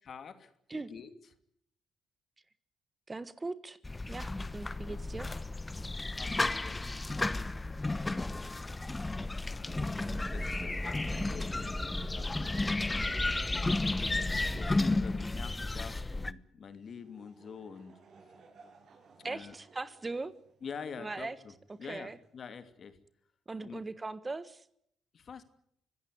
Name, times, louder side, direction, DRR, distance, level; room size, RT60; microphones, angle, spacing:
voice 1, 0.0-1.1 4.8-5.0 6.2-7.6 7.9-8.3 9.4-10.0 10.3-12.8 13.8-18.0 19.2-19.5 20.6-21.5 21.8-23.0 23.6-23.8 25.1-25.4, left 6 dB, 50° left, 10 dB, 2.7 m, -47 dB
voice 2, 3.1-3.8 4.1-5.3 19.2-20.3 21.0-21.4 21.9-22.2 23.5-24.6, right 3 dB, 25° right, 14 dB, 1.4 m, -39 dB
sound 1, 3.8-16.3, left 2 dB, 20° left, 1.0 m, -33 dB
sound 2, 9.7-15.0, equal, ahead, 1.7 m, -39 dB
Laughter / Crowd, 16.6-22.4, right 4 dB, 65° right, 7.3 m, -61 dB
25.0 x 16.5 x 9.4 m, 0.72 s
cardioid pair, 90°, 0 cm